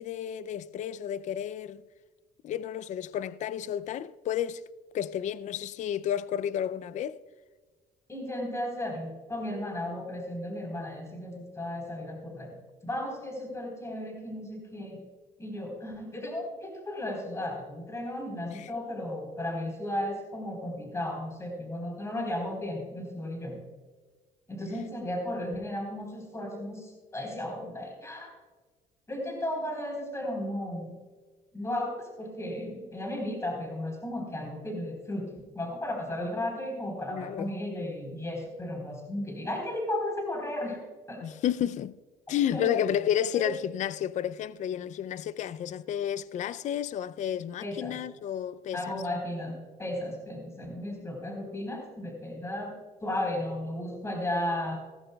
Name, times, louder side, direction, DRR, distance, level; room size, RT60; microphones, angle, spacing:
voice 1, 0.0-1.8 2.4-4.6 4.9-7.2 18.5-18.7 37.1-37.5 41.2-42.0 42.3-48.8, left 10 dB, 45° left, 0.4 m, -31 dB
voice 2, 8.1-12.5 12.8-15.0 15.4-23.6 24.5-28.3 29.1-31.0 31.5-40.8 41.1-41.2 42.5-42.7 43.3-43.5 47.6-48.0 48.7-52.8 53.0-54.8, left 1 dB, 15° left, 3.8 m, -34 dB
16.5 x 14.0 x 2.3 m
cardioid pair, 110°, 17 cm